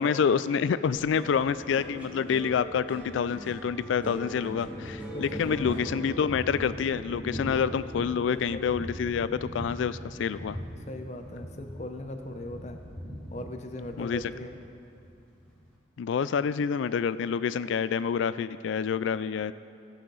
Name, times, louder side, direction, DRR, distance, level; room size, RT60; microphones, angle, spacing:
voice 1, 0.0-10.6 14.0-14.2 16.0-19.5, left 6 dB, 85° left, 15 dB, 0.3 m, -27 dB
Thunder, 0.9-15.7, equal, 5° left, 2.0 m, -42 dB
sound 1, 1.1-9.6 9.9-10.6, right 1 dB, 10° right, 1.1 m, -43 dB
voice 2, 5.1-5.9 8.1-8.7 10.9-12.8 13.3-14.5, left 1 dB, 35° left, 5 dB, 0.7 m, -39 dB
17.0 x 5.8 x 3.9 m, 2.4 s
head